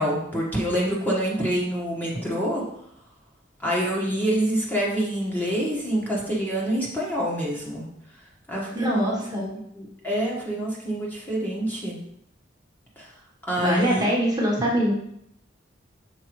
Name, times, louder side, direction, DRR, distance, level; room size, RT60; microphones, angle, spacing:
voice 1, 0.0-2.6 3.6-7.9 8.5-9.2 9.7-12.0 13.0-13.1 13.5-14.1, right 1 dB, 10° left, -5 dB, 1.4 m, -26 dB
voice 2, 8.7-9.5 13.6-15.0, equal, 20° right, -4 dB, 1.3 m, -23 dB
6.7 x 4.8 x 3.1 m, 0.74 s
head